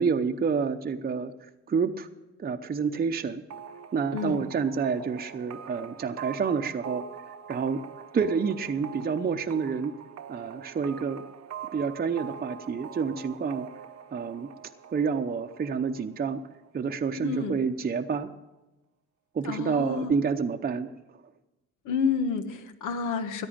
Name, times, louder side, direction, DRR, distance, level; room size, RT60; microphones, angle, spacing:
voice 1, 0.0-1.3 1.7-2.1 2.4-3.4 3.9-7.0 7.5-7.8 8.1-10.0 10.3-11.2 11.7-13.7 14.1-14.5 14.9-16.4 16.7-18.3 19.3-20.9, right 5 dB, 30° right, 6 dB, 0.7 m, -28 dB
sound 1, 3.5-17.0, right 8 dB, 60° right, 0.9 m, -44 dB
voice 2, 4.1-4.4 17.2-17.6 19.4-20.1 21.8-23.5, left 5 dB, 85° left, 8 dB, 1.3 m, -29 dB
14.0 x 9.8 x 7.2 m, 1.0 s
cardioid pair, 90°, 30 cm